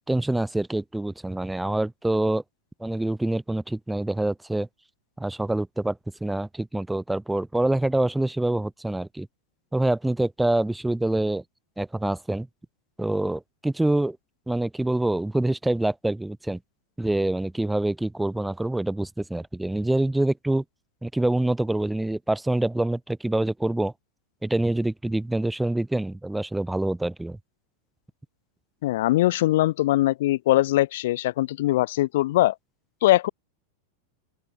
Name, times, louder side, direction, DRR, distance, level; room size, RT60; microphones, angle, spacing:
voice 1, 0.1-2.4 2.8-4.7 5.2-9.3 9.7-11.4 11.8-12.5 13.0-14.2 14.5-16.6 17.0-20.6 21.0-23.9 24.4-27.4, right 1 dB, 5° right, 0.9 m, -26 dB
voice 2, 28.8-32.5 33.0-33.3, left 16 dB, 55° left, 1.0 m, -21 dB
open air
figure-of-eight pair, 90°, 0 cm